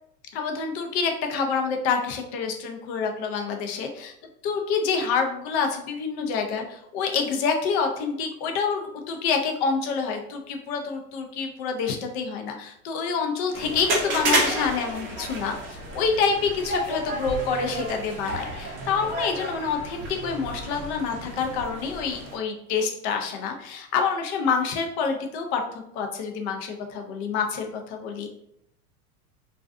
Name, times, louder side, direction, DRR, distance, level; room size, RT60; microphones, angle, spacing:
voice 1, 0.3-4.1 4.4-28.3, left 5 dB, 50° left, 4 dB, 0.6 m, -27 dB
sound 1, 13.5-22.4, right 2 dB, 25° right, 0.5 m, -31 dB
2.4 x 2.2 x 2.4 m, 0.76 s
hypercardioid pair, 120°, 45 cm